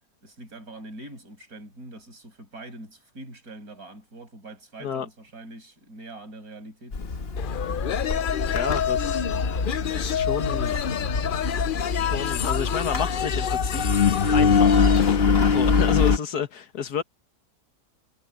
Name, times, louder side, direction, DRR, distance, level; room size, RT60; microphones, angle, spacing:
voice 1, 0.2-7.2 15.7-15.9, right 2 dB, 65° right, 7.1 m, -43 dB
Engine, 6.9-16.2, left 5 dB, 40° left, 1.5 m, -24 dB
sound 1, 7.4-15.2, left 9 dB, 90° left, 0.4 m, -28 dB
voice 2, 8.5-9.3 9.9-10.7 12.0-13.8 14.3-15.0 15.5-17.0, left 7 dB, 75° left, 1.9 m, -30 dB
omnidirectional pair, 1.7 m